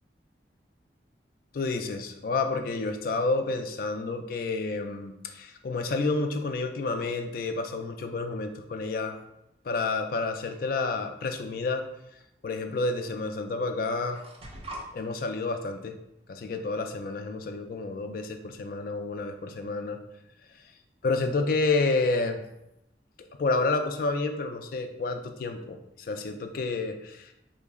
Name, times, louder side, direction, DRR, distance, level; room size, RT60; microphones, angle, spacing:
voice 1, 1.5-9.2 9.6-11.8 12.4-14.2 14.9-16.0 16.3-20.0 21.0-22.4 23.4-27.3, left 3 dB, 55° left, 6 dB, 0.3 m, -29 dB
sound 1, 10.5-11.0 12.2-12.3 13.2-13.3 13.6-14.9, right 1 dB, 35° right, 0.5 m, -43 dB
3.7 x 2.0 x 3.5 m, 0.85 s
head